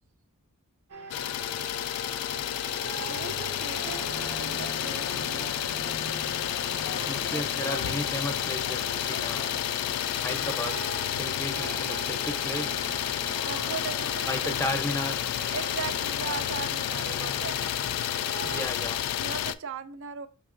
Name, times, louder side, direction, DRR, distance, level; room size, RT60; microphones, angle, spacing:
sound 1, 0.9-18.7, right 4 dB, 90° right, 0.8 m, -42 dB
Idling, 1.1-19.5, left 11 dB, 85° left, 0.3 m, -30 dB
voice 1, 3.0-5.6 7.1-7.4 13.4-14.6 15.5-17.6 19.2-20.3, right 6 dB, 60° right, 0.4 m, -38 dB
voice 2, 7.1-9.6 10.2-10.8 11.2-12.9 14.3-15.2 18.4-19.0, left 1 dB, 10° left, 0.6 m, -34 dB
5.3 x 3.5 x 2.5 m
head